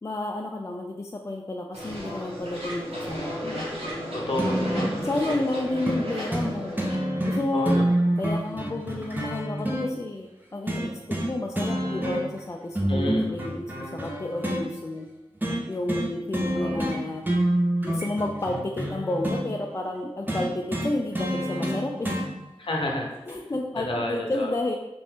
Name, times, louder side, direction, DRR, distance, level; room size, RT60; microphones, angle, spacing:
voice 1, 0.0-3.7 5.1-6.8 7.2-7.8 8.2-15.1 15.7-17.2 17.8-22.2 23.3-24.8, left 2 dB, 30° left, 2 dB, 0.3 m, -31 dB
sound 1, 1.7-7.0, equal, 80° right, 0.8 m, -34 dB
voice 2, 4.1-5.1 7.5-7.8 12.9-13.3 16.6-16.8 22.6-23.1 23.8-24.5, left 1 dB, 60° left, 0 dB, 0.7 m, -30 dB
sound 2, 4.4-5.0 5.9-6.0 6.3-6.5 6.8-9.9 10.7-11.3 11.5-12.4 12.7-14.6 15.4-15.6 15.9-16.1 16.3-17.0 17.2-19.4 20.3-22.3 23.3-23.4, right 1 dB, 20° right, 0.7 m, -27 dB
2.7 x 2.6 x 3.3 m, 0.98 s
cardioid pair, 40°, 10 cm